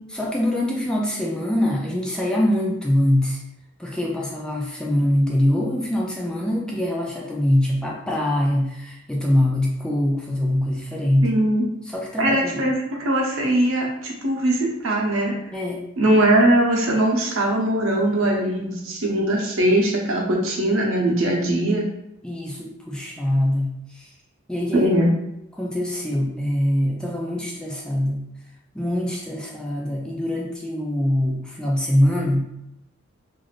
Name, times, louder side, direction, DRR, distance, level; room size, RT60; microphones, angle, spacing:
voice 1, 0.1-3.4 3.8-11.3 11.8-12.7 15.5-15.8 22.2-24.1 24.5-24.9 25.5-28.2 28.7-32.4, left 1 dB, 5° left, -2 dB, 0.3 m, -23 dB
voice 2, 11.2-11.6 12.2-12.7 13.0-15.3 16.0-21.8 24.8-25.1, right 1 dB, 80° right, -1 dB, 0.7 m, -20 dB
3.2 x 2.5 x 2.4 m, 0.82 s
head